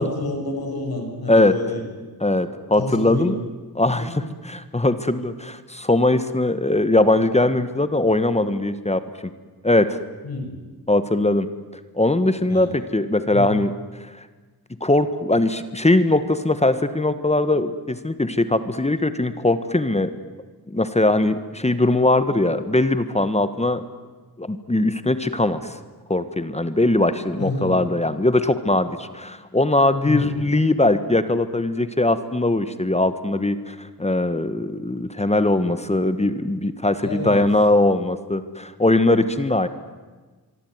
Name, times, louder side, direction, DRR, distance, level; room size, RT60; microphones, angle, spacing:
voice 1, 0.0-1.8 2.8-3.4 3.9-4.2 10.2-10.6 12.5-12.7 13.3-13.5 27.4-27.8 30.0-30.3 37.0-37.5, left 2 dB, 70° left, 3 dB, 7.1 m, -28 dB
voice 2, 2.2-3.3 3.7-9.0 9.6-10.0 10.9-11.5 11.9-14.1 14.8-20.1 20.7-23.8 24.4-25.8 26.1-39.7, left 2 dB, 15° left, 11 dB, 1.4 m, -20 dB
24.5 x 24.0 x 9.6 m, 1.3 s
wide cardioid pair, 110°, 37 cm